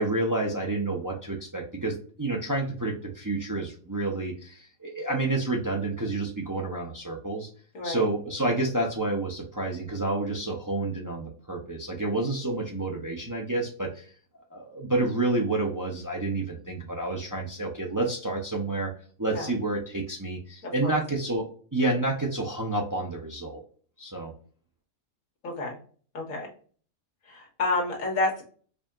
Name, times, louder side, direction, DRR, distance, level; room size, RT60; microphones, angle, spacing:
voice 1, 0.0-7.5 7.8-14.1 14.5-18.9 19.2-23.6 24.0-24.3, right 2 dB, 25° right, 0 dB, 0.4 m, -29 dB
voice 2, 20.6-21.0 25.4-25.8 26.1-26.5 27.3-28.4, left 2 dB, 70° left, -1 dB, 1.6 m, -29 dB
4.8 x 2.8 x 2.4 m, 0.43 s
omnidirectional pair, 1.5 m